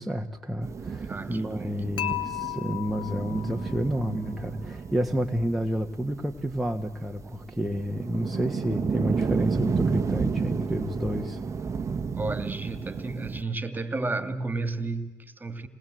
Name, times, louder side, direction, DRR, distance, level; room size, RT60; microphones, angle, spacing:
voice 1, 0.0-11.4, equal, ahead, 1 dB, 1.6 m, -30 dB
sound 1, 0.6-13.4, right 5 dB, 40° right, 1.2 m, -32 dB
voice 2, 1.1-2.2 12.2-15.7, right 3 dB, 20° right, 12 dB, 2.4 m, -33 dB
Dishes pots and pans / Chink clink, 2.0-4.1, left 14 dB, 70° left, 2.0 m, -35 dB
27.5 x 20.5 x 7.9 m, 1.2 s
hypercardioid pair, 60°, 8 cm